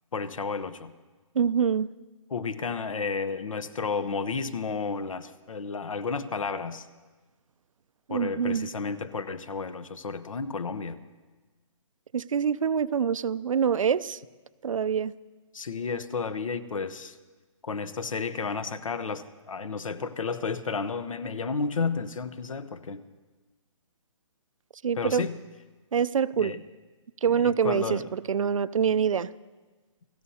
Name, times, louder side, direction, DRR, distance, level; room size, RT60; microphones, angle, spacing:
voice 1, 0.1-0.9 2.3-6.9 8.1-11.0 15.5-17.2 17.6-23.0 24.9-25.4 26.4-26.6 27.3-28.1, left 4 dB, 85° left, 1.0 m, -32 dB
voice 2, 1.4-1.9 8.1-8.7 12.1-14.2 14.6-15.1 24.8-25.2 25.9-26.5 27.2-29.3, right 7 dB, 90° right, 0.5 m, -25 dB
29.5 x 16.5 x 2.8 m
hypercardioid pair, 160°, 16 cm